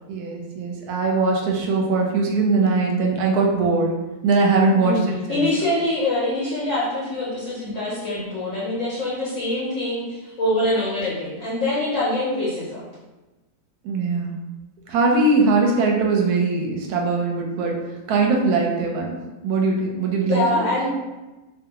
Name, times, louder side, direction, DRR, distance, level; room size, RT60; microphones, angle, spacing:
voice 1, 0.1-3.9 4.2-5.5 13.8-14.3 14.9-17.7 18.1-19.2 19.4-20.6, right 3 dB, 75° right, 0 dB, 1.0 m, -21 dB
voice 2, 5.3-12.8 20.3-20.9, left 1 dB, 60° left, -6 dB, 0.8 m, -24 dB
2.6 x 2.5 x 2.8 m, 1.1 s
omnidirectional pair, 1.8 m